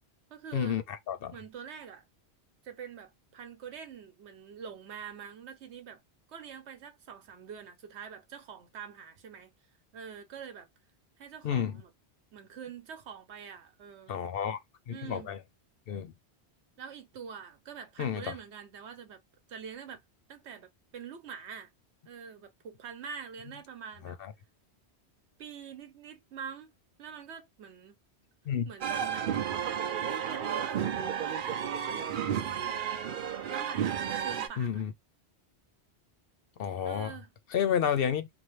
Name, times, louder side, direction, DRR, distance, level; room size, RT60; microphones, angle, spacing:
voice 1, 0.3-0.8 1.3-2.0 2.6-6.0 6.3-9.5 9.9-10.7 11.2-11.9 12.3-14.2 14.9-15.4 16.8-19.2 19.5-20.0 20.3-21.7 22.1-24.2 25.4-26.7 27.0-28.0 28.6-29.3 29.9-33.1 33.5-34.8 36.8-37.3, right 7 dB, 85° right, 1.1 m, -45 dB
voice 2, 11.4-11.8 14.1-14.6 14.9-15.4 15.9-16.1 18.0-18.3 24.0-24.3 28.5-28.7 34.6-34.9 36.6-37.1 37.5-38.3, left 8 dB, 65° left, 0.7 m, -30 dB
sound 1, 28.8-34.5, right 8 dB, 60° right, 0.6 m, -32 dB
2.8 x 2.1 x 3.1 m
omnidirectional pair, 1.1 m